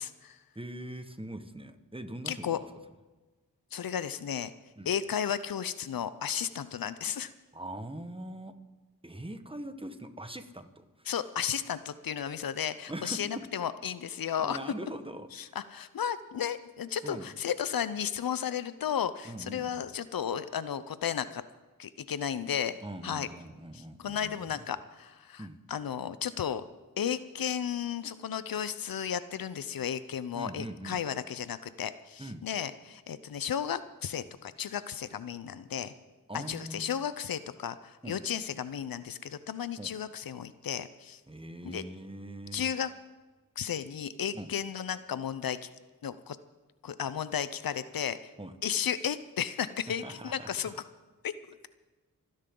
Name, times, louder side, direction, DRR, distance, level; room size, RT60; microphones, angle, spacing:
voice 1, 0.0-0.4 2.3-2.6 3.7-4.5 4.9-7.3 11.1-14.6 15.3-21.4 21.8-22.8 23.0-23.3 23.7-26.6 27.0-35.9 36.3-41.2 41.6-41.9 42.5-42.9 43.6-45.7 46.0-46.4 46.8-48.2 48.6-50.7 51.2-51.3, left 8 dB, 80° left, 14 dB, 0.7 m, -34 dB
voice 2, 0.5-2.6 4.8-4.9 7.5-8.5 9.0-11.1 12.9-13.2 14.4-15.3 17.0-17.3 19.2-19.8 22.8-24.6 25.4-25.6 30.3-31.0 32.2-32.5 36.3-36.8 38.0-38.2 39.8-39.9 41.3-42.7 44.3-44.5 48.4-48.5 50.0-50.8, right 1 dB, 15° right, 8 dB, 1.4 m, -42 dB
28.5 x 10.5 x 3.9 m, 1.2 s
cardioid pair, 45°, 35 cm